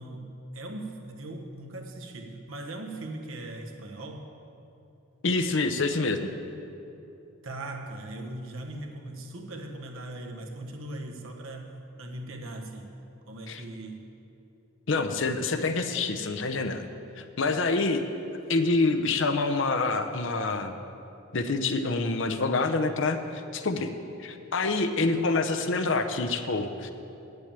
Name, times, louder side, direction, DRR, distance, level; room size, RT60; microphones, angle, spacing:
voice 1, 0.0-4.3 7.4-12.9 13.3-14.1, right 1 dB, 65° right, 3 dB, 1.2 m, -39 dB
voice 2, 5.2-6.3 13.5-13.6 14.9-16.9 17.2-18.0 18.5-20.8 21.3-23.9 24.2-26.9, left 3 dB, 55° left, 8 dB, 0.7 m, -27 dB
8.9 x 7.8 x 8.7 m, 2.8 s
head